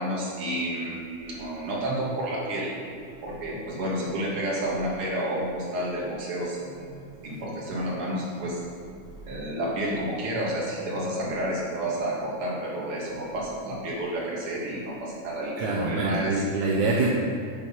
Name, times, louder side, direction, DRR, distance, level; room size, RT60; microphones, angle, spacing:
voice 1, 0.0-2.7 3.2-8.6 9.3-16.4, right 1 dB, 45° right, -4 dB, 2.9 m, -30 dB
voice 2, 15.6-17.1, right 3 dB, 75° right, -3 dB, 2.3 m, -25 dB
11.0 x 6.8 x 5.6 m, 2.5 s
omnidirectional pair, 3.6 m